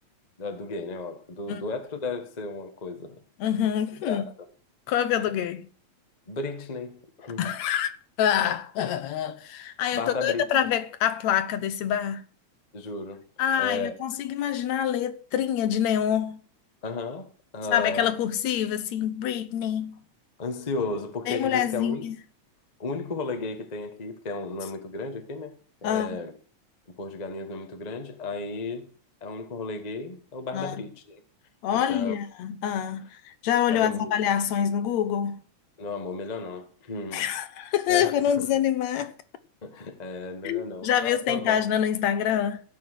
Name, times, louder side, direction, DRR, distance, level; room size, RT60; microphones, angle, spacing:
voice 1, 0.4-3.2 4.0-4.2 6.3-7.5 9.9-10.5 12.7-13.2 13.6-13.9 16.8-17.3 17.5-18.1 20.4-22.0 22.8-26.3 27.0-28.9 29.2-31.2 31.7-32.1 33.7-34.1 35.8-37.2 37.9-38.5 39.6-41.6, left 3 dB, 45° left, 0.5 m, -34 dB
voice 2, 3.4-4.3 4.9-5.7 7.4-7.9 8.2-12.2 13.4-16.4 17.7-20.0 21.3-22.2 25.8-26.2 30.5-30.8 31.6-35.4 37.1-39.1 40.4-42.6, left 9 dB, 70° left, 2.1 m, -26 dB
16.5 x 6.0 x 6.4 m
omnidirectional pair, 3.4 m